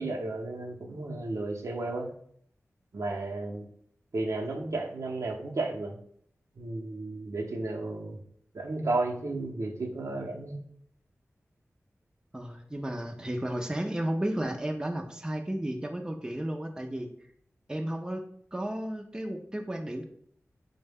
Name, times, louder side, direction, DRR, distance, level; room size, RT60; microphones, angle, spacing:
voice 1, 0.0-2.1 2.9-3.7 4.1-6.0 6.5-8.2 8.5-10.6, right 2 dB, 70° right, 1 dB, 0.7 m, -33 dB
voice 2, 12.3-17.1 17.7-20.0, right 1 dB, 15° right, 4 dB, 0.4 m, -33 dB
4.6 x 2.1 x 3.4 m, 0.64 s
wide cardioid pair, 65°, 5 cm